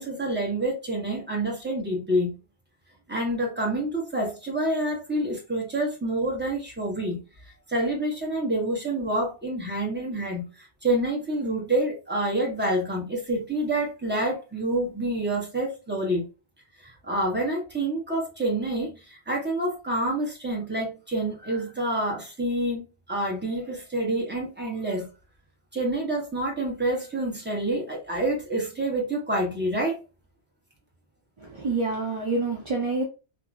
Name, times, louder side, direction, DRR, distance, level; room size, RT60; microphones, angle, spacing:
voice 1, 0.0-2.4 3.1-7.2 7.7-16.2 16.8-25.1 25.7-30.0, right 1 dB, 10° right, 0.9 m, -27 dB
voice 2, 31.4-33.0, right 3 dB, 40° right, 0.4 m, -27 dB
2.8 x 2.6 x 2.4 m
omnidirectional pair, 1.1 m